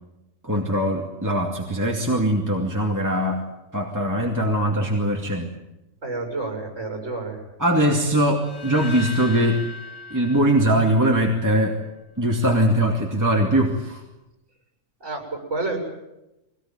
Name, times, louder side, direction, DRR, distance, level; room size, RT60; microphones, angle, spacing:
voice 1, 0.4-3.5 3.7-5.5 7.6-9.6 10.1-11.8 12.2-14.0, right 1 dB, 15° right, 0 dB, 2.3 m, -21 dB
voice 2, 6.0-7.4 15.0-15.8, right 3 dB, 65° right, 2 dB, 7.1 m, -29 dB
sound 1, 8.4-11.5, left 3 dB, 80° left, 2.4 m, -38 dB
23.0 x 18.5 x 9.0 m, 0.95 s
omnidirectional pair, 1.3 m